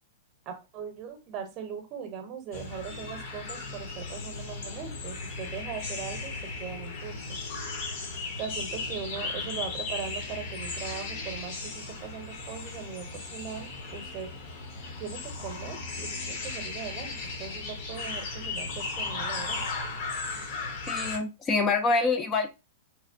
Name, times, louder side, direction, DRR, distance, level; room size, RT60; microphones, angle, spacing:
voice 1, 0.5-7.4 8.4-14.3 15.0-19.6, right 7 dB, 35° right, 0.8 m, -40 dB
sound 1, 2.5-21.2, left 3 dB, 45° left, 0.8 m, -36 dB
voice 2, 20.9-22.5, left 3 dB, 20° left, 0.4 m, -26 dB
3.1 x 2.0 x 2.5 m
hypercardioid pair, 145°, 0 cm